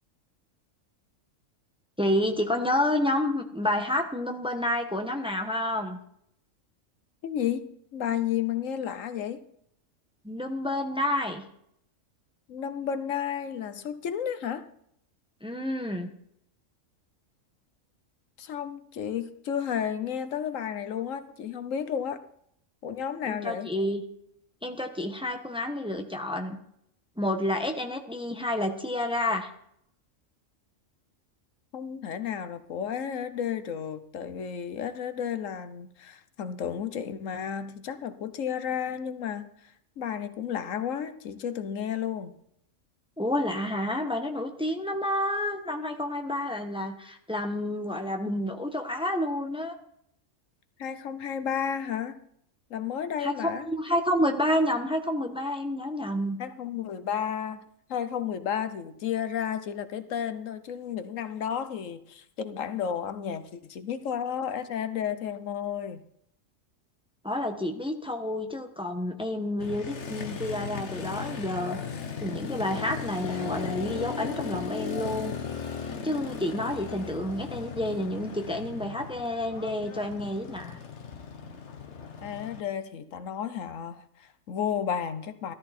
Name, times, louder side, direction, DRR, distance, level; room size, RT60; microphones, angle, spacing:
voice 1, 2.0-6.0 10.2-11.4 15.4-16.1 23.3-24.0 24.6-26.6 27.2-29.5 43.2-49.7 53.2-56.4 67.2-71.8 72.2-75.3 76.0-80.8, left 1 dB, 5° right, 4 dB, 1.1 m, -29 dB
voice 2, 7.2-7.7 7.9-9.4 12.5-14.7 18.4-22.2 22.8-23.7 31.7-42.3 50.8-52.2 52.7-53.7 56.4-57.6 57.9-66.0 82.2-85.5, left 8 dB, 75° left, 11 dB, 1.2 m, -32 dB
Motorcycle, 69.6-82.6, left 6 dB, 60° left, 1.4 m, -37 dB
13.5 x 13.0 x 4.3 m, 0.71 s
omnidirectional pair, 1.4 m